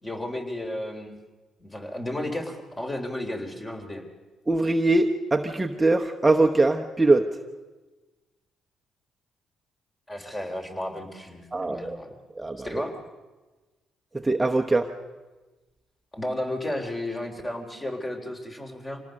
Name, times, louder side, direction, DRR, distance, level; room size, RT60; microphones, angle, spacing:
voice 1, 0.0-1.2 1.6-4.0 10.1-12.2 12.6-12.9 16.1-19.0, left 1 dB, 20° left, 3 dB, 3.7 m, -33 dB
voice 2, 4.5-7.3 11.5-12.0 12.4-12.7 14.1-14.9, right 2 dB, 15° right, 3 dB, 1.0 m, -22 dB
25.5 x 18.0 x 6.5 m, 1.2 s
cardioid pair, 90°, 0 cm